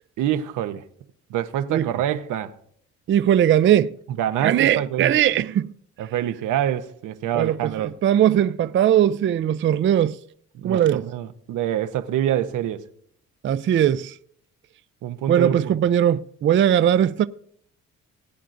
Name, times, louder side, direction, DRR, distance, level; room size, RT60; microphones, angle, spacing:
voice 1, 0.2-0.8 1.3-2.5 4.2-5.1 6.0-7.9 10.6-12.8 15.0-15.8, right 11 dB, 85° right, 0.8 m, -26 dB
voice 2, 3.1-3.9 4.4-5.7 7.3-7.7 8.0-10.2 10.6-11.0 13.4-14.1 15.3-17.3, right 10 dB, 40° right, 0.4 m, -19 dB
20.0 x 9.1 x 2.6 m
cardioid pair, 90°, 30 cm